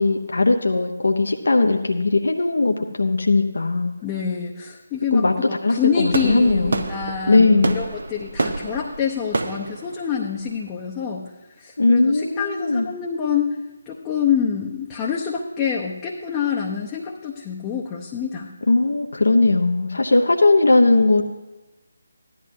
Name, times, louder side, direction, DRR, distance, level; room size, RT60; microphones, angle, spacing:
voice 1, 0.0-3.9 5.1-5.3 5.6-6.8 7.3-7.8 11.8-12.9 18.7-21.2, left 3 dB, 60° left, 4 dB, 0.8 m, -18 dB
voice 2, 4.0-11.2 11.6-13.5 13.9-18.5, left 7 dB, 15° left, -3 dB, 0.8 m, -26 dB
sound 1, 6.1-11.0, right 2 dB, 60° right, 0.8 m, -28 dB
15.5 x 11.0 x 2.7 m, 1.1 s
figure-of-eight pair, 150°, 0 cm